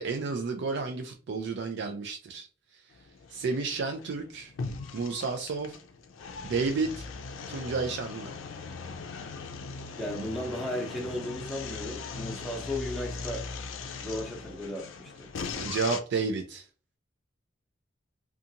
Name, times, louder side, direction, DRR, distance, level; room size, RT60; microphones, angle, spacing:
voice 1, 0.0-2.5 3.3-4.5 4.9-5.8 6.4-7.1 7.5-8.3 15.6-16.7, right 4 dB, 65° right, 5 dB, 0.4 m, -31 dB
sound 1, 2.9-16.0, left 4 dB, 85° left, 0.4 m, -40 dB
voice 2, 10.0-13.4 14.0-15.1, left 1 dB, ahead, -1 dB, 0.7 m, -35 dB
2.5 x 2.3 x 2.7 m, 0.36 s
head